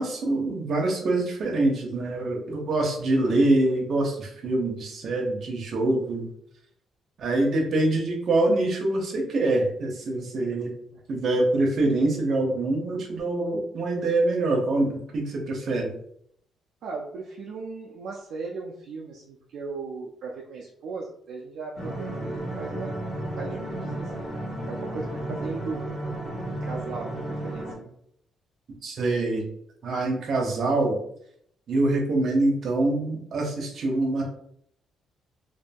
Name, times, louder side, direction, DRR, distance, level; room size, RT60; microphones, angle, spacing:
voice 1, 0.0-6.3 7.2-10.7 11.1-15.9 28.8-29.5 29.8-31.0 31.7-34.2, right 2 dB, 60° right, 1 dB, 0.7 m, -25 dB
voice 2, 16.8-23.0 23.4-25.9 26.6-27.9, right 4 dB, 80° right, -2 dB, 0.4 m, -37 dB
sound 1, 21.8-27.7, right 1 dB, 5° left, 1.4 m, -33 dB
2.6 x 2.5 x 2.2 m, 0.69 s
cardioid pair, 90°, 0 cm